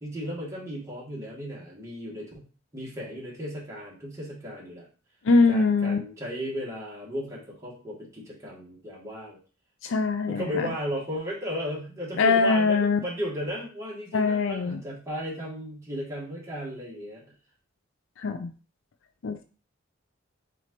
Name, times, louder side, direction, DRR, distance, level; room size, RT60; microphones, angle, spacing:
voice 1, 0.0-2.5 2.7-4.9 5.5-9.4 10.3-17.2, equal, 15° right, -6 dB, 1.5 m, -35 dB
voice 2, 5.2-6.0 9.8-10.7 12.2-13.0 14.1-14.8 18.2-18.5 19.2-19.4, left 4 dB, 65° left, 8 dB, 0.4 m, -22 dB
4.4 x 3.8 x 3.0 m, 0.36 s
head